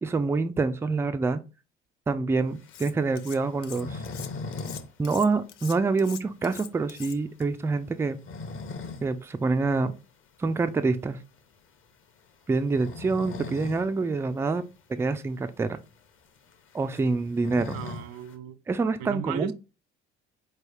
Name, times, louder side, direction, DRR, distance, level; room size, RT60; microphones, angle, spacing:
voice 1, 0.0-1.4 2.1-4.0 5.0-8.2 9.0-9.9 10.4-11.2 12.5-14.6 14.9-15.8 16.7-17.8 18.7-19.5, right 3 dB, 10° right, 0.3 m, -26 dB
sound 1, 2.6-4.9 5.2-5.3 5.7-5.8 6.3-6.4 7.9-9.1 9.5-9.6 11.2-11.4 12.6-13.9 14.2-14.3 14.6-14.7 15.4-15.5 15.7-18.3, left 3 dB, 35° left, 0.9 m, -39 dB
Cutlery silverware, 2.7-3.4 3.6-7.4, left 10 dB, 80° left, 0.5 m, -43 dB
voice 2, 17.7-18.6 19.0-19.5, right 10 dB, 60° right, 0.6 m, -35 dB
4.6 x 3.2 x 3.0 m
figure-of-eight pair, 55°, 35 cm